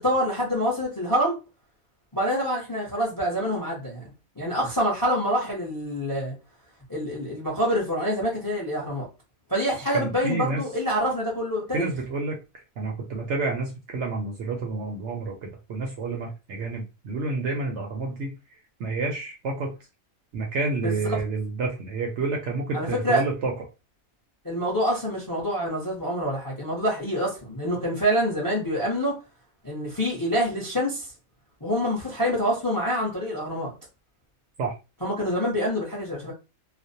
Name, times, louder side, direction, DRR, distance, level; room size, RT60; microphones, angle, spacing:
voice 1, 0.0-1.4 2.1-4.0 4.4-6.3 6.9-9.1 9.5-11.9 20.8-21.2 22.7-23.2 24.4-29.2 29.6-31.1 31.6-33.7 35.0-36.3, equal, 25° left, 0.5 m, -26 dB
voice 2, 9.9-10.6 11.7-12.4 12.8-18.3 18.8-19.7 20.3-23.5 34.6-34.8, right 3 dB, 65° right, 0.7 m, -29 dB
2.4 x 2.0 x 2.6 m
omnidirectional pair, 1.5 m